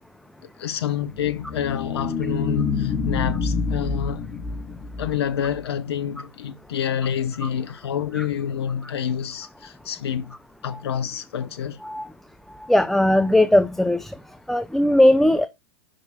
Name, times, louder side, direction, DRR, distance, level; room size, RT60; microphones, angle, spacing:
voice 1, 0.6-4.2 5.0-10.4 10.6-11.8, left 8 dB, 75° left, 0.6 m, -28 dB
sound 1, 1.1-5.6, left 5 dB, 30° left, 1.5 m, -27 dB
voice 2, 12.7-14.1 14.5-15.5, left 1 dB, ahead, 0.5 m, -18 dB
5.7 x 5.0 x 4.0 m
hypercardioid pair, 100°, 14 cm